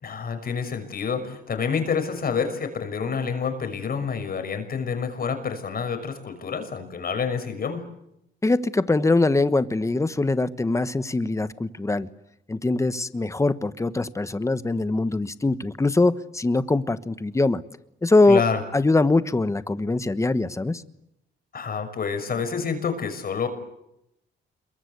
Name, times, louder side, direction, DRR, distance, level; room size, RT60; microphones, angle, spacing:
voice 1, 0.0-7.8 18.3-18.6 21.5-23.5, left 6 dB, 50° left, 7 dB, 6.0 m, -28 dB
voice 2, 8.4-12.1 12.5-17.6 18.0-18.4 18.7-20.8, left 2 dB, 15° left, 13 dB, 1.2 m, -22 dB
27.5 x 23.0 x 8.3 m, 0.84 s
cardioid pair, 90°, 20 cm